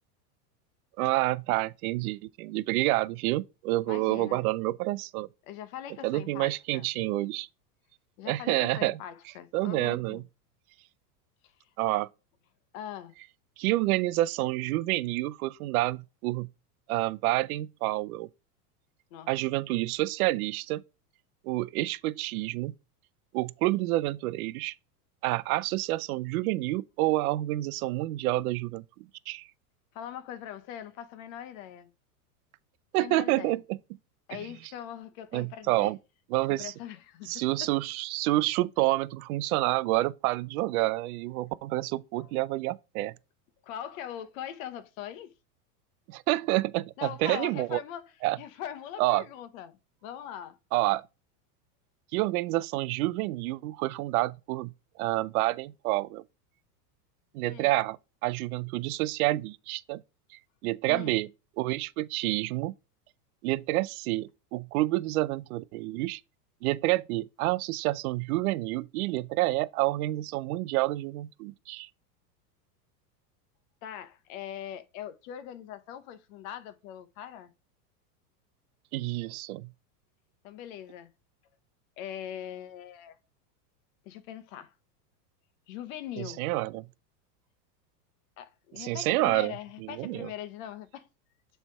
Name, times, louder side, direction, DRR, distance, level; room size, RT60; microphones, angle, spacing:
voice 1, 1.0-5.3 6.0-7.5 8.3-9.0 9.5-10.2 11.8-12.1 13.6-16.5 16.9-18.3 19.3-20.8 21.4-22.7 23.3-24.7 25.2-28.8 29.3-29.4 32.9-33.6 35.3-36.0 36.3-36.7 37.3-43.1 46.1-47.8 48.2-48.4 49.0-49.2 50.7-51.1 52.1-54.7 55.0-56.2 57.3-60.0 60.6-61.3 61.6-62.7 63.4-66.2 66.6-71.9 78.9-79.7 86.2-86.9 88.8-89.5 89.8-90.3, right 18 dB, 60° right, 0.6 m, -28 dB
voice 2, 3.9-4.5 5.5-6.9 8.2-10.2 12.7-13.1 19.1-19.3 29.9-31.9 33.0-33.6 34.3-35.9 36.5-37.7 42.2-42.3 43.6-45.3 47.0-48.0 48.4-50.6 57.4-57.7 60.8-61.2 73.8-77.5 80.4-81.1 82.0-83.2 84.0-84.7 85.7-86.4 88.4-91.1, left 10 dB, 55° left, 1.0 m, -41 dB
7.2 x 3.4 x 4.6 m
supercardioid pair, 130°, 48 cm